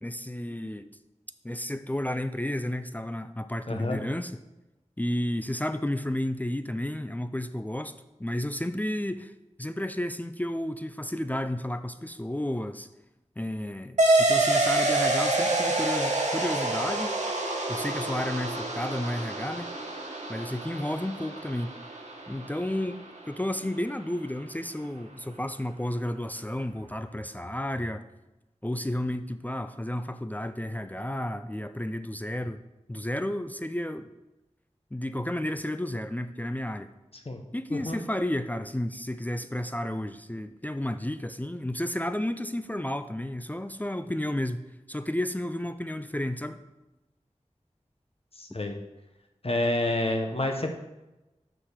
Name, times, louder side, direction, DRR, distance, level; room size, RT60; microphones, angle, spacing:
voice 1, 0.0-0.9 1.4-4.4 5.0-7.9 8.2-9.3 9.6-12.9 13.4-17.2 17.7-19.7 20.3-21.7 22.3-28.0 28.6-32.6 32.9-34.1 34.9-36.9 37.5-44.6 44.9-46.6, left 1 dB, 15° left, 10 dB, 0.4 m, -32 dB
voice 2, 3.7-4.0 37.3-37.4 37.7-38.0 48.4-48.8 49.4-50.8, left 2 dB, 55° left, 3 dB, 0.9 m, -28 dB
sound 1, 14.0-23.0, right 2 dB, 80° right, 1.1 m, -27 dB
6.0 x 4.8 x 6.5 m, 1.0 s
wide cardioid pair, 55°, 12 cm